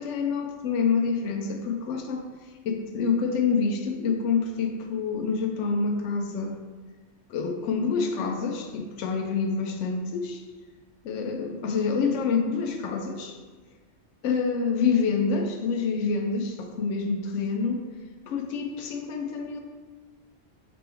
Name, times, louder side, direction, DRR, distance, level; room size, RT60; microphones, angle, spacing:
voice 1, 0.0-2.2 2.6-6.6 7.3-10.4 11.0-13.4 14.2-17.8 18.3-19.6, left 5 dB, 90° left, 4 dB, 0.9 m, -27 dB
5.0 x 3.0 x 3.4 m, 1.4 s
omnidirectional pair, 1.2 m